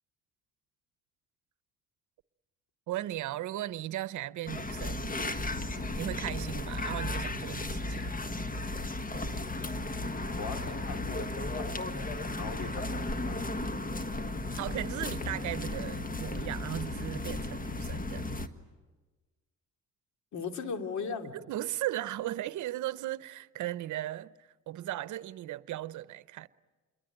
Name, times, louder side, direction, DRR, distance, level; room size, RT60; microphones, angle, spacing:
voice 1, 2.9-5.2 6.0-8.1 14.6-18.2 21.3-26.5, right 14 dB, 75° right, 0.8 m, -37 dB
sound 1, 4.5-18.5, left 2 dB, 30° left, 1.6 m, -35 dB
voice 2, 9.6-13.4 20.3-21.3, left 5 dB, 70° left, 2.7 m, -40 dB
27.5 x 23.0 x 9.0 m
cardioid pair, 90°, 30 cm